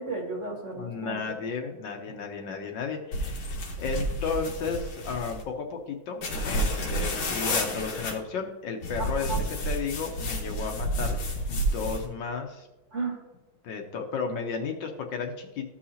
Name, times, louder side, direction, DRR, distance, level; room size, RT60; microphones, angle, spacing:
voice 1, 0.0-1.4 9.0-9.4 12.9-13.2, right 3 dB, 40° right, 0 dB, 1.6 m, -34 dB
voice 2, 0.7-3.5 3.8-9.3 9.7-11.2 11.5-12.7 13.6-15.7, left 5 dB, 70° left, 3 dB, 1.4 m, -33 dB
sound 1, 3.1-5.4 6.2-8.1 8.8-12.1, equal, 90° left, 2.1 m, -30 dB
14.0 x 5.7 x 2.8 m, 1.1 s
omnidirectional pair, 2.2 m